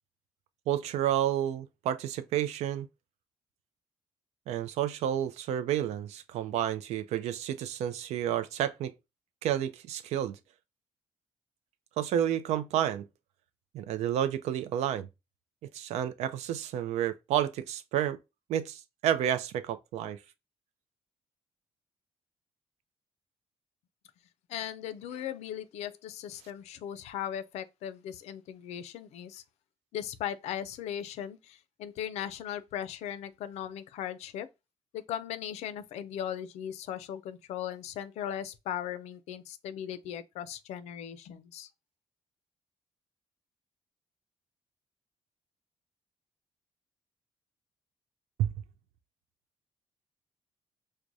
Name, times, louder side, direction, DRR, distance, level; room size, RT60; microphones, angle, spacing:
voice 1, 0.7-2.9 4.5-8.9 9.4-10.4 12.0-13.0 13.7-15.1 15.7-18.2 18.5-20.2 48.4-48.5, right 10 dB, 90° right, 0.4 m, -30 dB
voice 2, 24.5-29.4 29.9-34.5 34.9-41.7, left 10 dB, 85° left, 0.4 m, -38 dB
4.6 x 2.1 x 2.5 m
cardioid pair, 105°, 11 cm